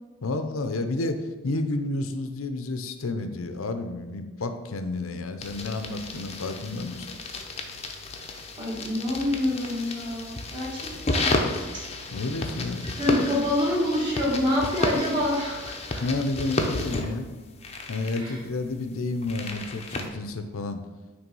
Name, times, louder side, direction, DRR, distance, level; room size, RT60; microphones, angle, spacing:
voice 1, 0.2-7.1 12.1-12.9 16.0-17.3 17.9-20.8, left 2 dB, 75° left, 8 dB, 0.7 m, -30 dB
sound 1, 5.4-20.1, left 2 dB, 30° left, 0.7 m, -32 dB
voice 2, 8.6-10.8 11.1-11.4 13.0-16.0 18.2-18.4, left 1 dB, 20° right, -6 dB, 1.7 m, -26 dB
9.1 x 3.4 x 5.4 m, 1.3 s
head